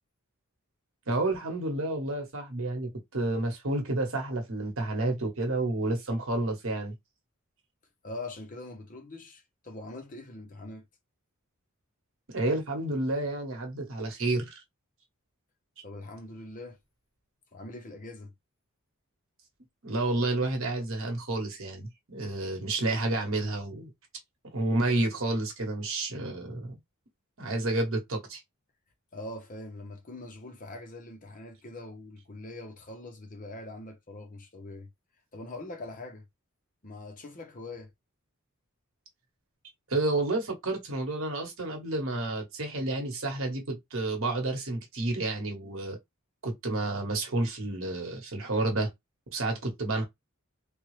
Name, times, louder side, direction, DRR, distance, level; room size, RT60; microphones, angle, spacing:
voice 1, 1.1-6.9 12.3-14.6 19.8-23.9 24.5-26.7 27.4-28.4 39.9-46.0 46.4-48.9 49.3-50.0, right 2 dB, 65° right, 1.2 m, -30 dB
voice 2, 8.0-10.9 15.8-16.8 17.5-18.3 29.1-34.9 35.3-36.2 36.8-37.9, left 2 dB, 40° left, 0.9 m, -43 dB
3.4 x 2.3 x 3.2 m
head